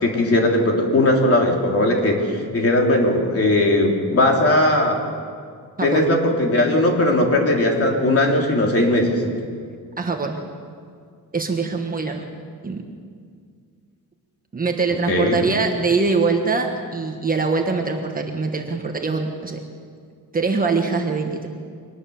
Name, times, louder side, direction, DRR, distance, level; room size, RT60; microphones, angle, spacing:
voice 1, 0.0-5.0 5.8-9.2 15.1-15.4, left 1 dB, 40° left, 1 dB, 3.2 m, -18 dB
voice 2, 5.8-6.1 10.0-10.4 11.3-12.2 12.6-12.8 14.5-19.6 20.3-21.5, right 4 dB, 25° right, 3 dB, 1.4 m, -23 dB
24.0 x 19.5 x 7.0 m, 2.1 s
wide cardioid pair, 175°, 37 cm